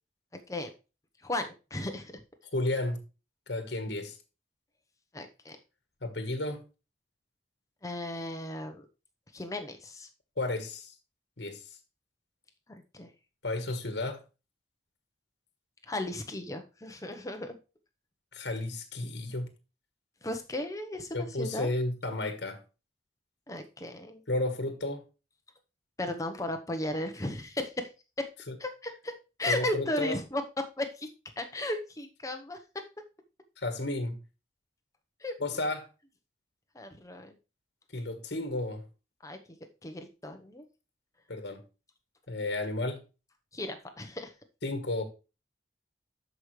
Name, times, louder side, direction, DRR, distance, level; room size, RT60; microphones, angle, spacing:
voice 1, 1.2-2.2 5.1-5.6 7.8-8.9 9.3-10.1 12.9-13.1 15.9-17.6 20.2-21.7 23.5-24.2 26.0-27.9 28.2-28.3 28.6-29.1 29.4-31.1 31.4-32.6 35.2-35.3 36.7-37.4 39.2-39.4 39.8-40.6 43.5-44.3, left 1 dB, 20° left, 0.9 m, -35 dB
voice 2, 2.5-3.0 3.5-4.2 6.0-6.6 10.4-10.9 11.4-11.6 13.4-14.2 18.3-19.5 21.1-22.6 24.3-25.0 28.5-28.6 29.5-30.2 33.6-34.2 35.4-35.9 37.9-38.8 41.3-41.6 42.3-43.0 44.6-45.0, left 2 dB, 65° left, 1.4 m, -32 dB
12.5 x 5.1 x 3.2 m
head